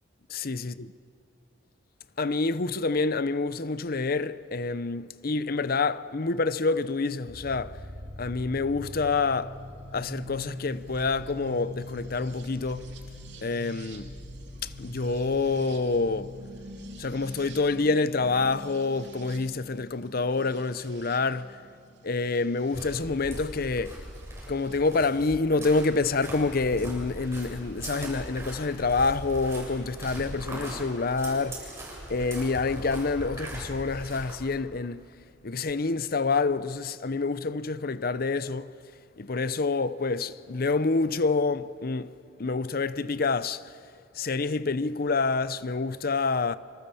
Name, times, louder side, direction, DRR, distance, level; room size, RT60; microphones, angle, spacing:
voice 1, 0.3-0.7 2.2-7.8 8.2-9.6 9.9-12.9 13.4-14.1 14.6-16.4 17.0-21.6 22.0-24.0 24.5-31.7 32.1-35.0 35.4-38.7 39.2-42.1 42.4-43.6 44.1-46.6, left 3 dB, 55° left, 0.7 m, -27 dB
sound 1, 7.3-23.0 24.2-24.8, left 1 dB, 70° right, 2.9 m, -43 dB
sound 2, 22.6-34.5, right 1 dB, 15° right, 7.5 m, -40 dB
26.5 x 26.5 x 7.1 m
head